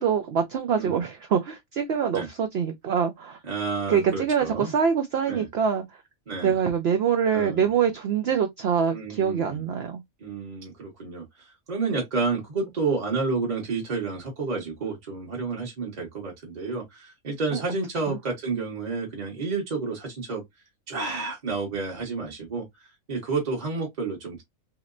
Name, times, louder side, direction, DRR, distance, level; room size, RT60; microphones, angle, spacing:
voice 1, 0.0-3.4 3.9-6.0 6.4-10.0 17.5-17.6 18.1-18.2, right 7 dB, 60° right, 0.7 m, -25 dB
voice 2, 3.5-4.7 5.3-5.5 6.3-6.5 7.3-7.7 8.9-9.6 10.2-20.4 20.9-24.4, right 4 dB, 35° right, 1.0 m, -30 dB
3.1 x 2.9 x 2.4 m
omnidirectional pair, 1.5 m